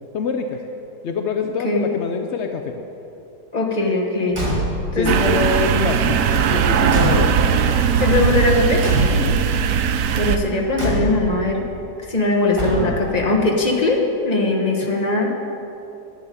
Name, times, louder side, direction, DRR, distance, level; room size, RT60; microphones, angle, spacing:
voice 1, 0.1-0.6 1.0-2.8 4.9-7.3 9.1-9.5, left 5 dB, 70° left, 5 dB, 0.6 m, -25 dB
voice 2, 3.5-4.4 4.9-5.1 8.0-8.8 10.1-11.6 12.1-15.3, left 2 dB, 25° left, 0 dB, 1.3 m, -20 dB
Car / Truck / Slam, 4.3-5.0 6.3-7.7 8.8-9.6 10.8-11.4 12.5-13.2, equal, 15° right, 2.0 m, -25 dB
sound 1, 5.1-10.4, right 7 dB, 70° right, 1.0 m, -19 dB
11.0 x 6.9 x 9.2 m, 2.9 s
omnidirectional pair, 1.9 m